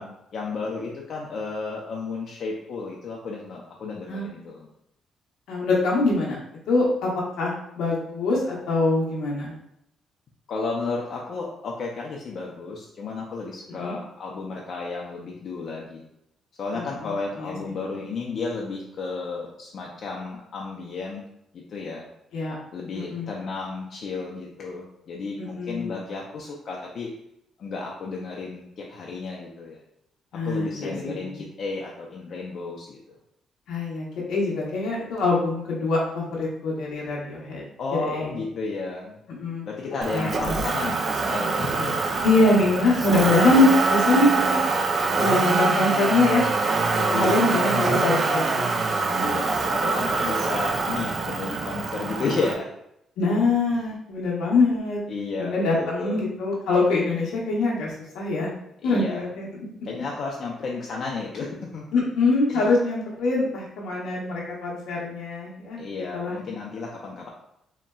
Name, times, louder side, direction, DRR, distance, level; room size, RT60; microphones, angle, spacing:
voice 1, 0.0-4.7 10.5-16.0 16.6-21.2 21.5-22.0 22.7-27.1 27.6-29.8 30.4-33.0 37.8-39.2 39.7-42.0 43.1-43.4 47.1-48.1 49.2-52.7 53.7-53.8 55.1-56.2 58.8-59.2 59.8-61.5 61.7-61.8 62.5-62.6 65.8-67.3, left 4 dB, 60° left, -2 dB, 0.4 m, -32 dB
voice 2, 4.1-4.5 5.5-6.4 6.7-7.1 7.4-9.5 13.7-13.9 16.7-17.5 22.3-22.6 22.9-23.3 25.6-25.9 30.3-31.4 33.7-37.6 38.1-38.3 39.3-39.6 40.1-40.6 42.2-44.6 45.2-46.4 46.9-49.2 53.2-55.0 55.4-58.5 58.8-59.5 61.9-65.8 66.1-66.4, left 2 dB, 90° left, -4 dB, 0.8 m, -24 dB
Motor vehicle (road), 40.0-52.5, right 3 dB, 45° right, 0.4 m, -24 dB
3.8 x 2.1 x 2.3 m, 0.79 s
cardioid pair, 90°, 0 cm